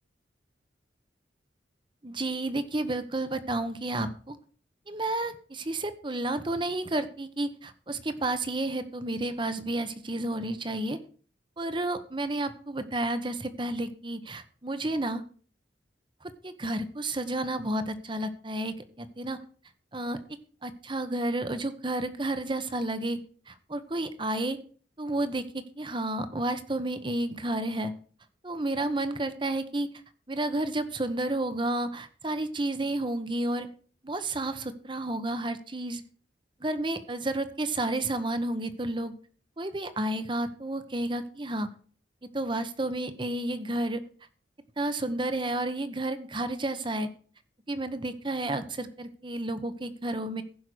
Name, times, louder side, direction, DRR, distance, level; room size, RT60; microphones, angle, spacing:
voice 1, 2.0-4.4 4.9-11.0 11.6-15.2 16.2-19.4 19.9-20.2 20.6-23.2 23.5-24.6 25.0-27.9 28.4-29.9 30.3-33.7 34.0-36.0 36.6-39.1 39.6-41.7 42.3-44.0 44.8-47.1 47.7-50.4, right 1 dB, 25° right, 11 dB, 1.1 m, -31 dB
15.5 x 5.6 x 6.3 m, 0.43 s
head